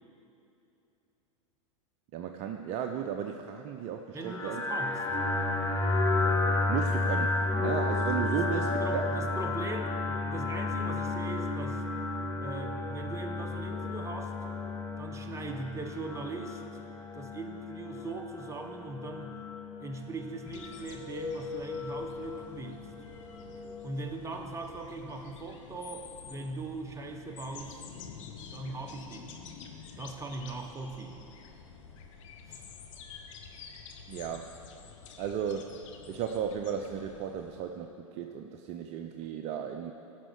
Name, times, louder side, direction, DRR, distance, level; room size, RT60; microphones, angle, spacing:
voice 1, 2.1-4.6 6.7-8.7 8.9-9.0 34.1-34.5 35.2-35.8 36.1-39.9, right 8 dB, 40° right, 5 dB, 0.6 m, -35 dB
voice 2, 4.1-5.1 8.3-11.8 12.4-14.4 15.0-16.9 17.1-19.4 19.8-22.8 23.8-28.0 28.4-29.4 30.0-31.3 32.5-32.6, right 3 dB, 15° right, 4 dB, 1.1 m, -40 dB
sound 1, 4.2-23.9, left 3 dB, 15° left, 1.7 m, -32 dB
sound 2, 20.5-37.6, left 6 dB, 65° left, 1.2 m, -49 dB
15.5 x 6.4 x 4.8 m, 2.9 s
hypercardioid pair, 100°, 17 cm